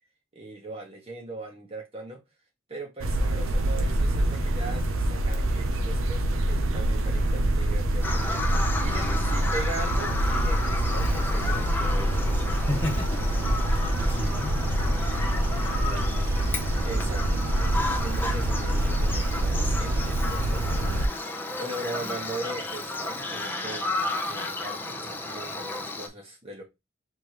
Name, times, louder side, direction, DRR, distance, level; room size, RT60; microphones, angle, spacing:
voice 1, 0.3-2.2 2.7-12.2 16.8-23.9 24.2-26.6, right 2 dB, 30° right, 1.1 m, -39 dB
sound 1, 3.0-21.1, right 1 dB, 90° right, 0.7 m, -26 dB
Bird vocalization bird call bird song, 8.0-26.1, left 2 dB, 10° left, 0.7 m, -33 dB
voice 2, 12.5-13.2 13.6-15.1 15.5-16.2, left 1 dB, 25° left, 1.6 m, -35 dB
4.7 x 3.5 x 3.0 m
head